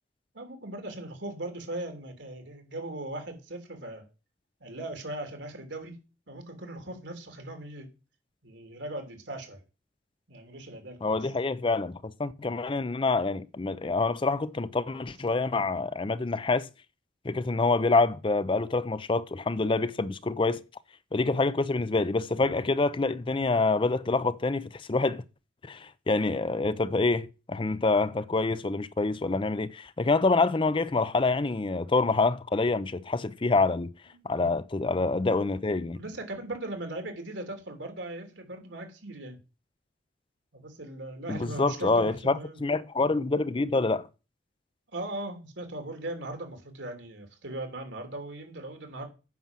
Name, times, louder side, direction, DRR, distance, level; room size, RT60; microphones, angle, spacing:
voice 1, 0.3-4.0 4.6-5.9 6.3-7.9 8.4-9.6 10.3-11.3 12.4-12.5 34.2-34.5 35.9-39.4 40.5-42.6 44.9-49.1, right 1 dB, 80° right, 3.1 m, -39 dB
voice 2, 11.0-16.7 17.2-20.6 21.1-25.2 25.6-33.9 34.2-36.0 41.3-44.1, left 3 dB, 30° left, 0.5 m, -26 dB
9.4 x 6.1 x 7.4 m
head